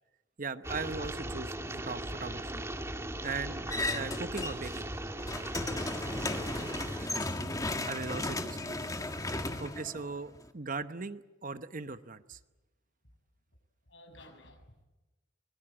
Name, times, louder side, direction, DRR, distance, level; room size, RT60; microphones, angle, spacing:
voice 1, 0.4-2.6 3.2-3.6 3.9-4.9 7.8-8.6 9.6-12.4, right 4 dB, 45° right, 11 dB, 1.0 m, -39 dB
sound 1, 0.6-7.1, right 1 dB, 15° right, 1.9 m, -38 dB
sound 2, 3.7-4.8 5.1-10.5, left 2 dB, 20° left, 1.7 m, -35 dB
voice 2, 9.0-9.6 13.9-14.8, left 1 dB, 75° left, 5 dB, 6.6 m, -55 dB
25.0 x 21.5 x 8.8 m, 1.1 s
head